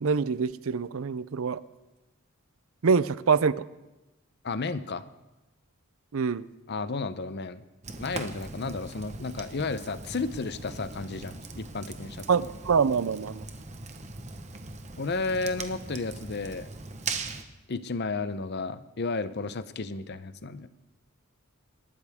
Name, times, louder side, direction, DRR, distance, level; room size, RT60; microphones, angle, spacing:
voice 1, 0.0-1.6 2.8-3.7 6.1-6.5 12.3-13.4, right 5 dB, 65° right, 17 dB, 0.5 m, -25 dB
voice 2, 4.4-5.0 6.7-7.6 8.0-12.3 15.0-16.7 17.7-20.7, left 3 dB, 50° left, 13 dB, 0.7 m, -33 dB
Fire, 7.8-17.4, right 3 dB, 30° right, 1.1 m, -40 dB
27.0 x 13.0 x 3.6 m, 1.1 s
head